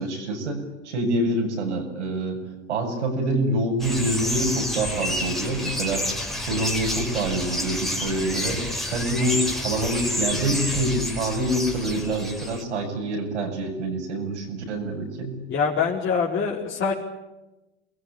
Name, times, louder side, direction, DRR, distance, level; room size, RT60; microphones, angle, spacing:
voice 1, 0.0-2.4 2.7-6.1 6.5-8.6 8.9-15.4, right 1 dB, 70° right, 3 dB, 7.5 m, -26 dB
sound 1, 3.8-12.6, left 1 dB, ahead, 4.8 m, -29 dB
voice 2, 15.5-16.9, left 5 dB, 35° left, -4 dB, 5.1 m, -24 dB
29.0 x 21.5 x 8.9 m, 1.0 s
figure-of-eight pair, 75°, 36 cm